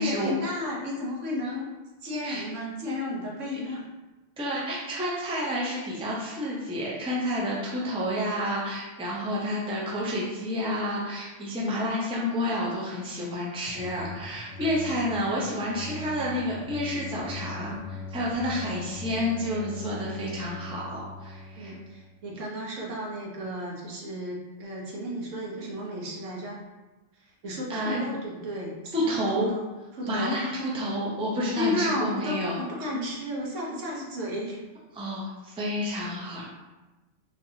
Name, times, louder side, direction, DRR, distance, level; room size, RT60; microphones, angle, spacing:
voice 1, 0.0-1.7 2.0-3.8 21.6-26.6 27.2-29.7 29.9-30.4 31.6-34.6, left 1 dB, 80° right, -3 dB, 1.2 m, -33 dB
voice 2, 4.4-21.7 27.7-28.0 28.9-29.5 30.0-32.6 34.9-36.4, equal, 5° right, -5 dB, 0.4 m, -30 dB
sound 1, 13.6-22.2, left 3 dB, 75° left, 1.0 m, -40 dB
3.7 x 2.8 x 2.7 m, 1.2 s
omnidirectional pair, 1.3 m